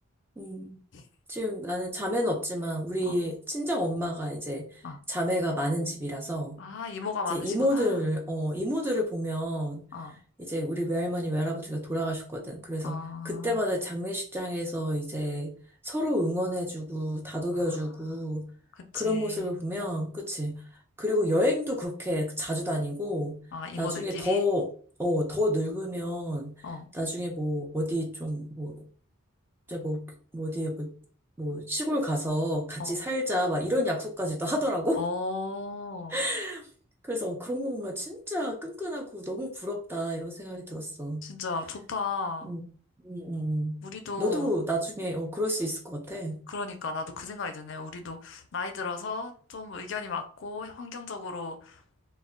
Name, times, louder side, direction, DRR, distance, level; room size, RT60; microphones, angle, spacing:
voice 1, 0.4-0.8 1.3-4.8 5.1-6.6 7.3-9.8 10.4-13.0 13.2-15.5 15.8-18.4 18.9-20.6 21.0-23.4 23.8-24.7 25.0-26.5 26.9-28.7 29.7-30.0 30.3-30.9 31.4-35.0 36.1-36.6 37.1-41.2 42.4-42.6 43.0-43.8 44.2-46.4, equal, 10° right, 0.4 m, -30 dB
voice 2, 6.6-8.1 9.9-10.2 12.8-13.6 17.5-17.8 18.1-18.2 18.8-19.5 23.5-24.5 26.6-26.9 32.8-33.0 34.9-36.2 41.2-42.5 43.8-44.5 46.5-51.8, left 4 dB, 55° left, 0.4 m, -35 dB
2.1 x 2.1 x 3.6 m
head